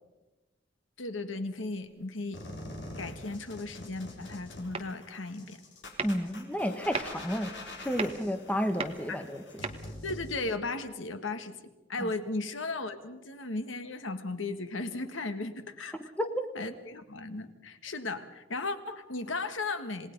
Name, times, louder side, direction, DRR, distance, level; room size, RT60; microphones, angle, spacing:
voice 1, 1.0-2.5 2.9-5.6 9.1-9.2 10.0-11.5 11.9-16.1 16.5-20.1, left 3 dB, 85° left, 9 dB, 1.6 m, -36 dB
sound 1, 1.7-2.1 4.7-5.2 5.5-5.7 6.0-9.9, right 4 dB, 30° right, 1.3 m, -39 dB
sound 2, 2.3-10.3, left 1 dB, 65° left, 4.1 m, -45 dB
voice 2, 6.0-7.5 7.8-9.4 12.0-12.1 16.2-16.4, equal, 5° left, 7 dB, 1.2 m, -31 dB
27.5 x 19.0 x 5.3 m, 1.1 s
head